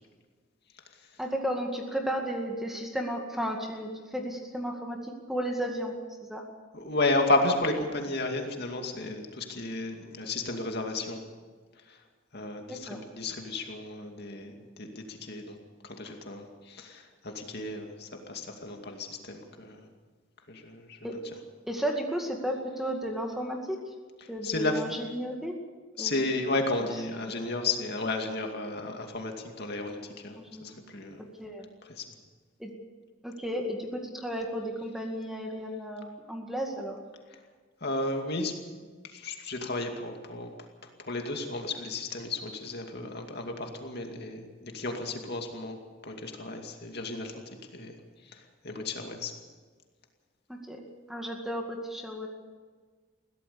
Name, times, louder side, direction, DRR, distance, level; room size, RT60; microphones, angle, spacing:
voice 1, 1.2-5.9 6.2-6.5 12.7-13.0 21.0-21.2 21.7-23.9 24.3-25.6 26.0-26.1 30.4-30.8 31.4-31.7 32.6-32.7 33.2-37.0 50.5-50.8 51.1-52.3, equal, ahead, 1 dB, 2.1 m, -34 dB
voice 2, 6.7-11.2 11.8-12.0 12.3-15.6 15.8-19.9 20.5-21.2 24.2-24.8 26.0-31.2 31.8-32.0 37.8-38.5 39.0-40.5 40.8-45.8 46.0-47.4 47.7-49.3, left 2 dB, 50° left, 3 dB, 2.4 m, -33 dB
22.0 x 16.5 x 7.0 m, 1.5 s
head